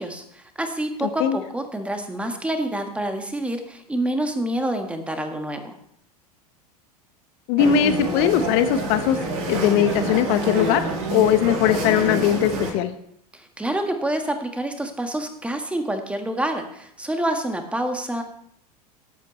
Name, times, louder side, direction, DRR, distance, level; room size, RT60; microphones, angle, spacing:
voice 1, 0.0-5.7 13.3-18.2, right 1 dB, 5° right, 5 dB, 1.6 m, -27 dB
voice 2, 1.0-1.4 7.5-9.2 9.5-10.8 11.1-12.9, left 10 dB, 50° left, 10 dB, 1.0 m, -20 dB
sound 1, 7.6-12.7, right 2 dB, 60° right, 3.0 m, -27 dB
18.0 x 8.3 x 3.2 m, 0.70 s
figure-of-eight pair, 80°, 21 cm